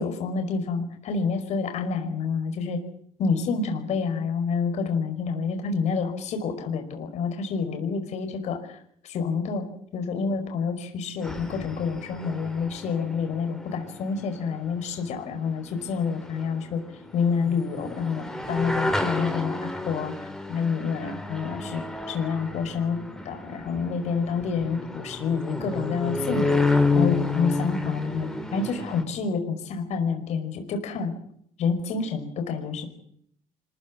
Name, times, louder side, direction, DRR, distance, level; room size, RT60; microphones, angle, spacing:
voice 1, 0.0-2.8 3.2-9.7 9.9-16.8 17.1-20.1 20.5-23.0 23.2-31.1 31.6-32.9, left 5 dB, 60° left, 5 dB, 5.1 m, -28 dB
sound 1, 11.2-29.0, left 3 dB, 5° left, 3.1 m, -30 dB
25.5 x 15.0 x 9.6 m, 0.68 s
cardioid pair, 120°, 13 cm